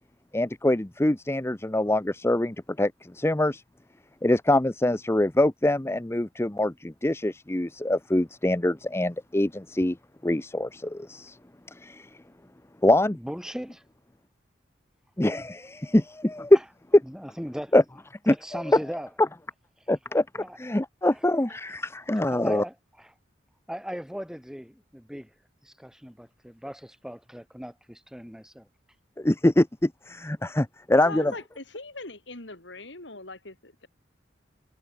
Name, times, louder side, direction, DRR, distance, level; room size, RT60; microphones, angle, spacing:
voice 1, 0.3-3.6 4.2-10.0 10.2-11.4 11.7-12.1 12.8-13.2 15.2-16.6 17.7-17.8 18.3-18.6 19.9-22.6 29.2-31.3, left 1 dB, 15° left, 0.7 m, -24 dB
voice 2, 13.1-13.8 15.3-15.4 17.1-17.7 18.3-19.1 20.4-20.6 22.3-23.1 23.7-25.3 25.6-28.7, equal, 5° right, 7.9 m, -38 dB
voice 3, 31.0-33.9, left 2 dB, 75° left, 4.9 m, -40 dB
head